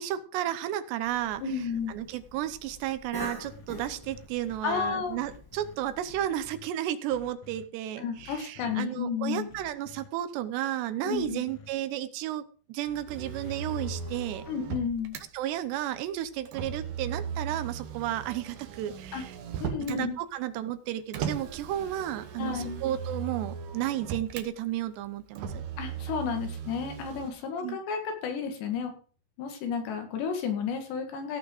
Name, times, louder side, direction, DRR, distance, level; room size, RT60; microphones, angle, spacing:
voice 1, 0.0-1.4 1.9-14.4 15.3-19.3 19.8-25.6 27.6-27.8, right 12 dB, 90° right, 12 dB, 3.1 m, -33 dB
Cough, 1.0-6.5, left 1 dB, 10° left, 1.1 m, -46 dB
voice 2, 1.4-2.0 4.6-5.2 8.0-9.5 11.0-11.4 14.5-15.2 19.1-19.2 19.6-20.2 22.4-22.8 25.8-28.9 29.4-31.4, left 6 dB, 90° left, 5 dB, 4.1 m, -32 dB
sound 1, 3.1-5.7 6.1-6.7 7.1-7.6 8.2-8.8 9.5-10.1 11.1-11.7 12.9-14.8, left 6 dB, 60° left, 2.4 m, -50 dB
Motor vehicle (road), 13.1-15.2 16.5-20.0 21.1-24.5 25.4-27.3, right 7 dB, 65° right, 2.4 m, -37 dB
16.5 x 6.1 x 4.9 m, 0.40 s
omnidirectional pair, 4.8 m